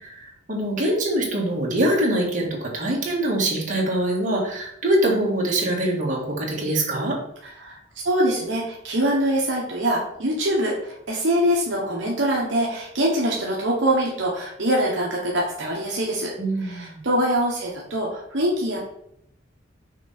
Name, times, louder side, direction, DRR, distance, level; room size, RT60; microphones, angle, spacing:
voice 1, 0.0-7.2 16.4-17.0, right 1 dB, 40° right, -3 dB, 1.7 m, -24 dB
voice 2, 7.4-7.8 8.0-16.3 16.6-18.8, right 1 dB, 70° right, -3 dB, 1.1 m, -24 dB
6.1 x 3.8 x 4.2 m, 0.75 s
head